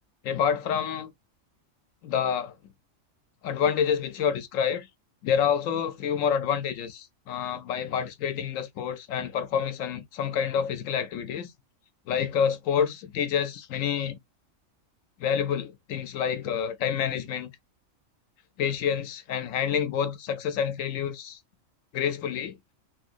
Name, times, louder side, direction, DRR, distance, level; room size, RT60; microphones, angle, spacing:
voice 1, 0.2-1.1 2.0-2.5 3.4-4.9 5.2-11.5 12.1-14.2 15.2-17.5 18.6-21.4 21.9-22.6, left 8 dB, 85° left, 1.0 m, -28 dB
2.7 x 2.7 x 2.5 m
omnidirectional pair, 1.3 m